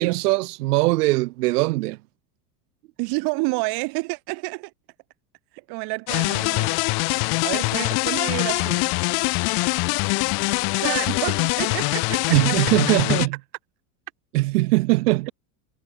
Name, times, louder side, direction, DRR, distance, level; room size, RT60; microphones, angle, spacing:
voice 1, 0.0-2.0 12.3-13.4 14.3-15.3, right 20 dB, 70° right, 4.2 m, -21 dB
voice 2, 3.0-4.7 5.5-6.7 7.4-8.9 10.5-12.7, right 28 dB, 50° right, 6.7 m, -29 dB
sound 1, 6.1-13.3, left 31 dB, 50° left, 2.9 m, -23 dB
supercardioid pair, 145°, 47 cm